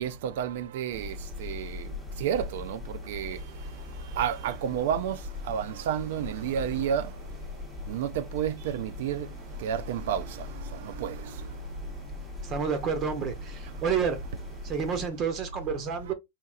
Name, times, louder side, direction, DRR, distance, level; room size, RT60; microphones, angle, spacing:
voice 1, 0.0-3.5 4.0-7.2 7.9-9.3 9.6-11.5 16.1-16.2, right 9 dB, 65° right, 0.4 m, -31 dB
sound 1, 0.9-15.1, left 3 dB, 15° left, 0.8 m, -40 dB
voice 2, 12.4-14.2 14.6-16.1, right 6 dB, 35° right, 0.7 m, -29 dB
4.3 x 2.8 x 2.4 m
hypercardioid pair, 125°, 0 cm